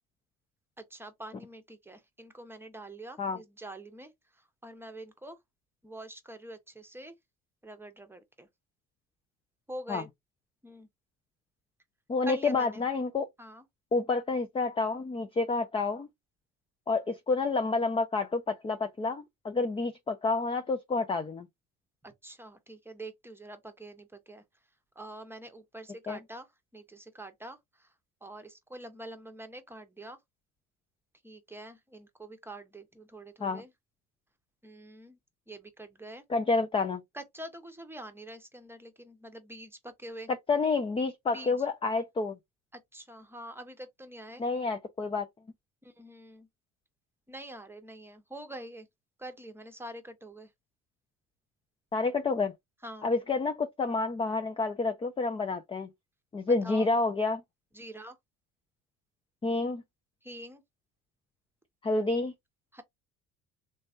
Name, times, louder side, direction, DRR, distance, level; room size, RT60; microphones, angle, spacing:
voice 1, 0.8-5.4 5.8-7.1 7.6-8.5 9.7-10.1 10.6-10.9 12.2-12.9 13.4-13.6 22.0-24.4 25.0-26.5 26.7-27.9 28.2-30.2 31.2-33.7 34.6-35.2 35.5-36.2 37.1-40.3 41.3-41.6 42.7-44.4 45.8-46.5 47.3-48.9 49.2-50.5 52.8-53.1 56.5-56.9 57.7-58.2 60.2-60.6 62.7-62.8, right 1 dB, 5° right, 0.8 m, -45 dB
voice 2, 12.1-13.3 13.9-16.1 16.9-21.5 26.1-26.2 33.4-33.6 36.3-37.0 40.3-42.3 44.4-45.3 51.9-52.5 53.0-55.9 56.3-57.4 59.4-59.8 61.8-62.3, left 3 dB, 15° left, 0.4 m, -29 dB
3.3 x 3.1 x 2.5 m
supercardioid pair, 90°, 35 cm